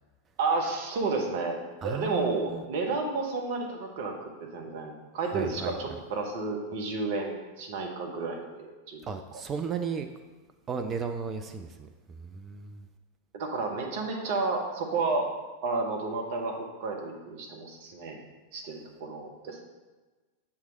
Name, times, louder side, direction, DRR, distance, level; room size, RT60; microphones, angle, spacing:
voice 1, 0.4-1.6 1.8-9.0 13.3-15.3 15.6-18.2 18.5-19.6, right 3 dB, 50° right, 1 dB, 1.0 m, -31 dB
voice 2, 1.8-2.6 5.3-5.7 9.1-10.1 10.7-12.8, right 6 dB, 25° right, 7 dB, 0.4 m, -35 dB
7.1 x 3.2 x 5.2 m, 1.3 s
figure-of-eight pair, 90°, 0 cm